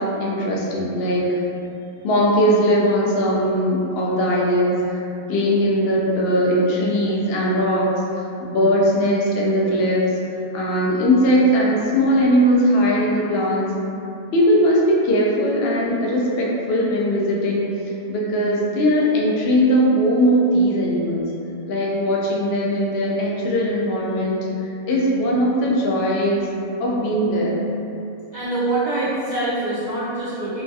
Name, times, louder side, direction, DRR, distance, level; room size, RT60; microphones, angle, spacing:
voice 1, 0.0-1.4 2.0-8.0 8.4-10.0 10.5-13.7 14.3-17.7 18.1-21.2 21.7-26.5 26.8-27.6, equal, 80° left, -4 dB, 0.5 m, -19 dB
voice 2, 28.3-30.6, right 2 dB, 85° right, -14 dB, 0.3 m, -24 dB
2.9 x 2.6 x 2.3 m, 2.7 s
omnidirectional pair, 1.6 m